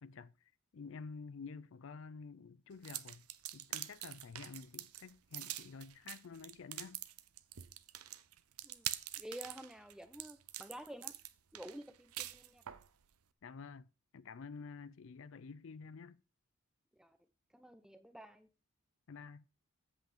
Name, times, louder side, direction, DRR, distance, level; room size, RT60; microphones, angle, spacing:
voice 1, 0.0-3.3 3.5-7.0 13.4-13.9 14.1-16.2 19.1-19.4, left 5 dB, 60° left, 0.4 m, -50 dB
sound 1, 2.8-12.9, right 13 dB, 85° right, 0.7 m, -45 dB
voice 2, 9.2-11.1 11.5-12.6 17.0-17.2 17.5-18.5, equal, 5° right, 0.8 m, -50 dB
8.3 x 8.0 x 5.0 m
head